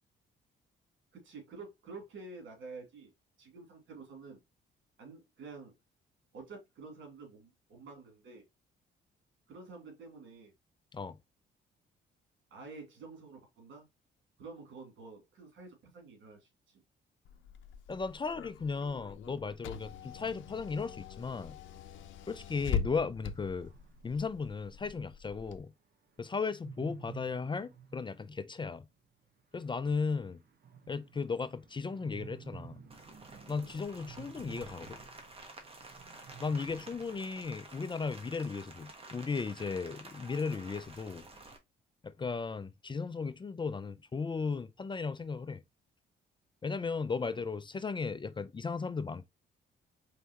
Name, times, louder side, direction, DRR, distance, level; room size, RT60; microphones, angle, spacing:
voice 1, 1.1-3.1 3.4-4.4 5.0-5.7 6.3-8.4 9.5-10.5 12.5-13.9 14.4-16.8 33.6-33.8, right 4 dB, 75° right, 2.4 m, -49 dB
Car / Engine, 17.2-25.6, left 7 dB, 75° left, 0.6 m, -42 dB
voice 2, 17.9-21.6 22.3-23.7 24.0-25.7 26.2-28.9 29.5-30.4 30.9-32.8 33.5-35.0 36.4-41.2 42.0-45.6 46.6-49.3, left 4 dB, 25° left, 0.4 m, -36 dB
sound 1, 19.4-21.2 22.4-24.2 26.4-28.8 29.0-29.1 29.4-29.5 29.7-37.5, right 7 dB, 55° right, 1.1 m, -53 dB
Rain, 32.9-41.6, right 2 dB, 30° right, 1.4 m, -51 dB
4.6 x 3.3 x 2.8 m
cardioid pair, 90°, 20 cm